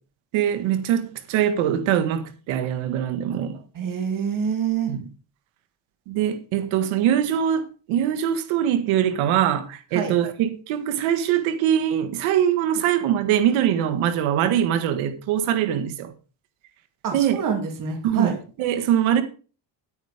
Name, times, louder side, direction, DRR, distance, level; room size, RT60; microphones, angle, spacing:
voice 1, 0.3-3.6 4.9-5.0 6.1-7.6 7.9-16.1 17.1-17.4 18.0-19.2, right 10 dB, 85° right, 1.8 m, -22 dB
voice 2, 3.7-4.9 9.9-10.1 17.0-18.4, right 6 dB, 45° right, 2.7 m, -26 dB
10.0 x 9.2 x 5.0 m
cardioid pair, 115°, 46 cm